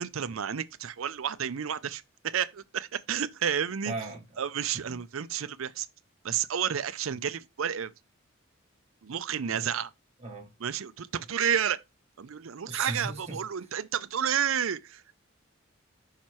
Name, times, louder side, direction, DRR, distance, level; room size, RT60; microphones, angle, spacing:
voice 1, 0.0-3.9 4.4-5.9 6.2-7.9 9.0-9.9 10.6-11.8 12.2-15.2, right 8 dB, 70° right, 0.5 m, -31 dB
voice 2, 3.9-4.4 4.9-5.0 9.5-9.8 10.2-10.5 12.7-13.4, right 3 dB, 30° right, 1.7 m, -37 dB
5.8 x 4.4 x 4.4 m
head